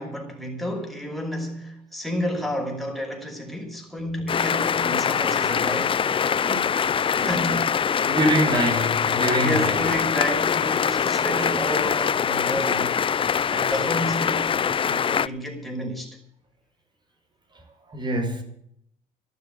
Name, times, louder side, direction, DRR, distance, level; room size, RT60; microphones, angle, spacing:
voice 1, 0.0-6.0 7.3-7.7 9.3-13.0 13.5-16.2, left 1 dB, ahead, 5.6 m, -31 dB
sound 1, 4.3-15.3, left 7 dB, 30° left, 0.6 m, -23 dB
voice 2, 6.1-6.9 7.2-7.6 8.0-10.0 11.2-11.6 17.5-18.4, right 1 dB, 25° right, 5.6 m, -26 dB
13.0 x 12.0 x 9.0 m
cardioid pair, 110°, 17 cm